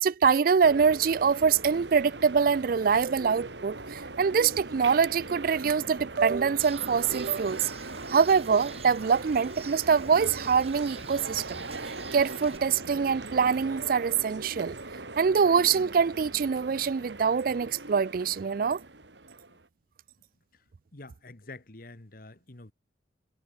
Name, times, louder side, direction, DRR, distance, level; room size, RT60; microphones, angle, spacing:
voice 1, 0.0-7.7 8.1-14.8 15.2-18.8, right 6 dB, 55° right, 0.4 m, -24 dB
sound 1, 0.6-19.7, right 2 dB, 85° right, 4.2 m, -41 dB
Bird, 6.6-12.6, right 4 dB, 35° right, 5.8 m, -46 dB
voice 2, 20.9-22.7, left 2 dB, 55° left, 1.8 m, -47 dB
head